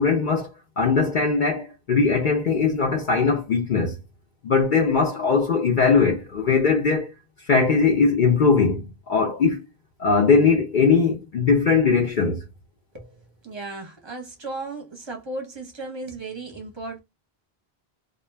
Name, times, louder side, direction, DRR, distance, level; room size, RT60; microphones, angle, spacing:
voice 1, 0.0-4.0 4.4-7.1 7.5-9.6 10.0-12.4, left 5 dB, 55° left, 0.7 m, -20 dB
voice 2, 12.9-17.0, right 2 dB, 30° right, 0.7 m, -35 dB
2.4 x 2.2 x 3.2 m
omnidirectional pair, 1.1 m